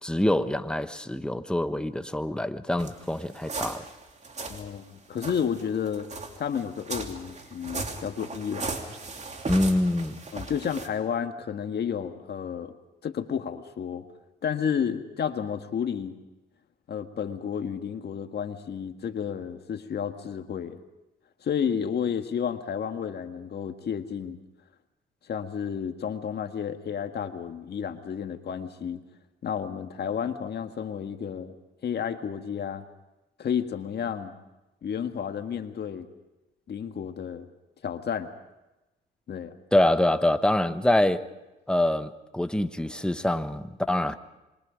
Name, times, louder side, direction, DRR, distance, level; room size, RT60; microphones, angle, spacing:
voice 1, 0.0-3.8 9.5-10.2 39.7-41.2 41.7-44.1, left 1 dB, 5° left, 9 dB, 1.2 m, -25 dB
sound 1, 2.8-4.7 5.1-10.9, right 3 dB, 35° right, 2.9 m, -37 dB
voice 2, 4.5-8.7 10.3-12.7 13.0-14.0 14.4-16.1 16.9-20.8 21.4-24.4 25.3-29.0 29.4-31.5 31.8-32.8 33.4-34.3 34.8-36.1 36.7-37.5 37.8-38.3 39.3-39.5, left 7 dB, 55° left, 7 dB, 1.8 m, -31 dB
26.5 x 23.5 x 5.2 m, 1.0 s
cardioid pair, 90°, 20 cm